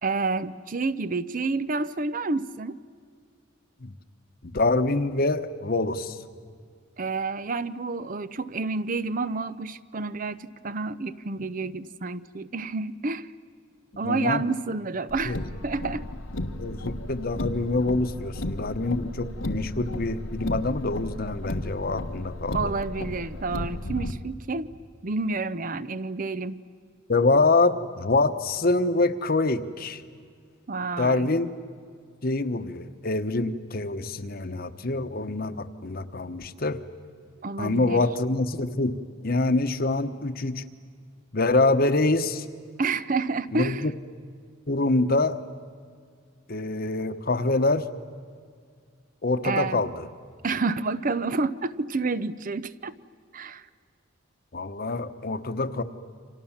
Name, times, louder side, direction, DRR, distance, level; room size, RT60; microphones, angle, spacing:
voice 1, 0.0-2.8 7.0-13.3 14.0-15.4 15.6-16.1 22.5-24.7 25.0-26.6 30.7-31.3 37.4-38.0 42.8-43.9 49.4-49.8 50.4-52.9 53.3-53.6, right 3 dB, 45° right, 14 dB, 0.7 m, -29 dB
voice 2, 4.4-6.2 14.0-14.5 15.2-15.4 16.6-22.7 27.1-30.0 31.0-31.5 32.2-36.8 37.6-39.0 39.2-40.6 41.3-42.4 43.5-43.9 44.7-45.4 46.5-47.9 49.2-50.1 54.5-55.8, left 2 dB, 50° left, 10 dB, 1.1 m, -25 dB
Car, 15.1-24.1, left 1 dB, 85° left, 1.5 m, -34 dB
29.5 x 26.0 x 7.3 m, 2.1 s
head